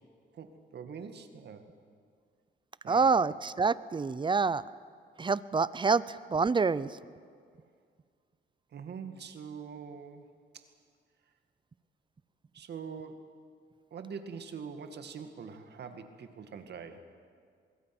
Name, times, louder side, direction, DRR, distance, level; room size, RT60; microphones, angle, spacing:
voice 1, 0.3-1.6 2.8-3.1 8.7-10.7 12.5-13.3 13.9-17.0, right 6 dB, 60° right, 7 dB, 2.1 m, -44 dB
voice 2, 2.9-4.6 5.2-6.9, right 4 dB, 25° right, 18 dB, 0.6 m, -27 dB
25.0 x 21.5 x 6.1 m, 2.1 s
cardioid pair, 90°, 20 cm